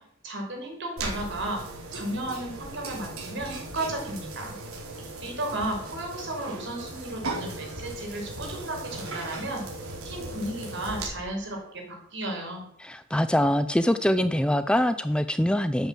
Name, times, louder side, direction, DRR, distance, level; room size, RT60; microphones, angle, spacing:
voice 1, 0.2-1.6 1.9-4.5 5.2-9.6 10.0-12.6, right 1 dB, 55° right, 1 dB, 5.1 m, -34 dB
sound 1, 1.0-11.0, right 2 dB, 75° right, 4.7 m, -37 dB
voice 2, 12.8-15.9, equal, 5° left, 11 dB, 0.4 m, -24 dB
12.5 x 9.0 x 7.5 m, 0.71 s
head